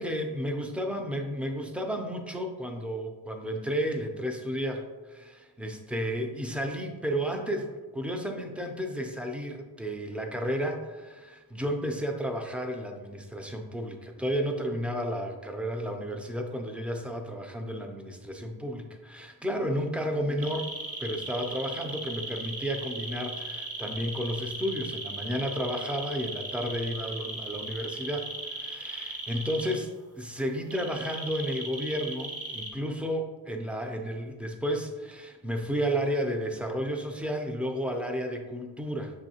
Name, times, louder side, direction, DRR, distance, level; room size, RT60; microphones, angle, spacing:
voice 1, 0.0-4.8 5.1-20.7 21.0-39.1, equal, 5° right, 4 dB, 0.3 m, -32 dB
sound 1, 20.4-29.7 30.7-32.7, right 3 dB, 35° right, 0.7 m, -37 dB
6.2 x 2.9 x 2.8 m, 1.2 s
wide cardioid pair, 135°, 42 cm